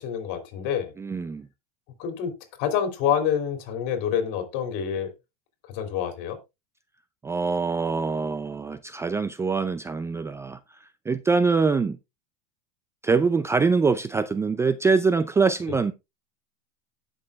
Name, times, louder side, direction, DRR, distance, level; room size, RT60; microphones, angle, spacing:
voice 1, 0.0-0.9 2.0-2.3 2.6-5.1 5.7-6.4, left 8 dB, 60° left, 3.0 m, -27 dB
voice 2, 1.0-1.5 7.2-12.0 13.0-15.9, right 4 dB, 15° right, 0.4 m, -24 dB
18.0 x 6.3 x 2.3 m
supercardioid pair, 115°, 21 cm